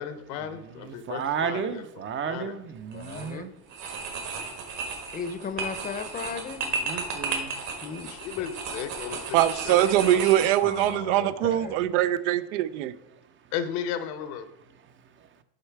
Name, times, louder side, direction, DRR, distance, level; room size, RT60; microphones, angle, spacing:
voice 1, 0.0-1.8 2.2-2.6 8.1-10.5 13.5-14.5, left 8 dB, 75° left, 10 dB, 0.9 m, -35 dB
voice 2, 0.8-3.5 6.8-7.6, right 7 dB, 35° right, 11 dB, 0.5 m, -33 dB
voice 3, 2.9-3.5 5.1-6.7 7.8-8.1 8.4-8.5 10.6-11.9, left 6 dB, 25° left, 10 dB, 0.6 m, -36 dB
sound 1, 2.9-3.3 3.7-10.9, right 4 dB, 60° right, 1.6 m, -34 dB
voice 4, 9.3-12.9, right 13 dB, 90° right, 14 dB, 0.5 m, -23 dB
6.6 x 5.6 x 4.6 m, 0.84 s
supercardioid pair, 115°, 35 cm